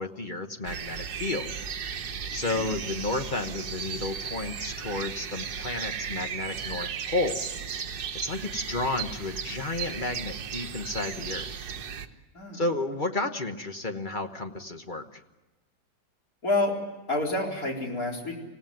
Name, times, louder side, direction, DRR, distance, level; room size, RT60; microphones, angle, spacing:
voice 1, 0.0-1.5 2.3-7.4 8.1-11.5 12.5-15.2, left 2 dB, 30° left, 6 dB, 1.1 m, -32 dB
sound 1, 0.7-12.1, right 7 dB, 60° right, 1.7 m, -35 dB
voice 2, 16.4-16.8 17.1-18.3, left 2 dB, 50° left, -1 dB, 4.8 m, -28 dB
26.5 x 17.0 x 9.3 m, 1.1 s
omnidirectional pair, 1.9 m